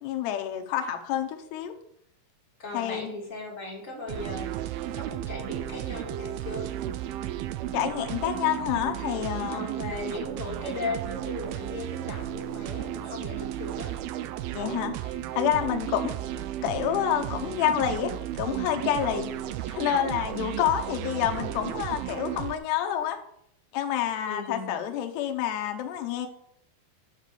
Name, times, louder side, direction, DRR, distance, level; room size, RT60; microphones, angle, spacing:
voice 1, 0.0-1.7 2.7-3.1 7.7-9.7 14.5-19.3 19.7-23.2 23.7-26.3, left 10 dB, 80° left, 5 dB, 3.0 m, -28 dB
voice 2, 2.6-4.5 4.9-6.7 9.5-13.9 24.3-24.8, left 2 dB, 25° left, -1 dB, 2.0 m, -37 dB
sound 1, 4.1-22.6, right 12 dB, 85° right, 2.2 m, -34 dB
8.4 x 6.6 x 6.8 m, 0.70 s
omnidirectional pair, 4.8 m